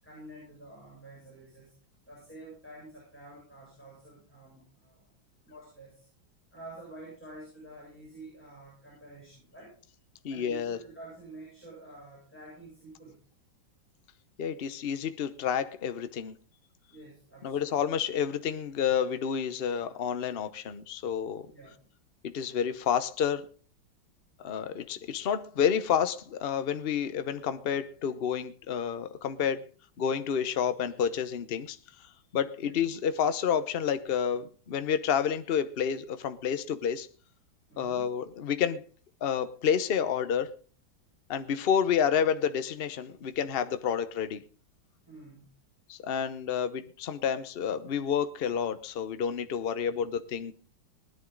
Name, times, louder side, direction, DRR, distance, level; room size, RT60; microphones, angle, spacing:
voice 1, 0.0-1.7 2.1-5.1 5.4-6.1 6.5-9.7 10.3-13.2 16.9-17.7 21.5-21.7 32.6-32.9 37.7-38.1 45.0-45.5, right 2 dB, 5° left, 7.4 m, -49 dB
voice 2, 10.2-10.8 14.4-16.4 17.4-21.5 22.2-23.5 24.4-29.6 30.0-31.8 32.3-37.1 37.8-38.9 39.2-40.5 41.3-44.4 45.9-50.5, left 8 dB, 55° left, 0.6 m, -29 dB
19.5 x 10.5 x 3.9 m
omnidirectional pair, 2.2 m